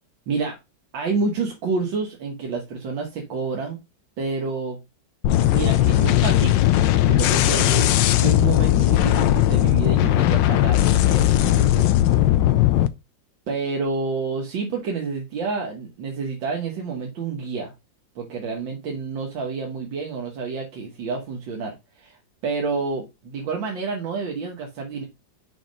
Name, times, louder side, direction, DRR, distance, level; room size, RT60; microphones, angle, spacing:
voice 1, 0.3-0.6 0.9-3.8 4.2-4.8 5.5-6.6 7.1-11.9 13.5-17.7 18.2-22.2 22.4-25.0, right 4 dB, 90° right, 1 dB, 2.0 m, -29 dB
sound 1, 5.2-12.9, left 13 dB, 85° left, 1.4 m, -18 dB
5.7 x 5.0 x 5.2 m, 0.24 s
omnidirectional pair, 2.0 m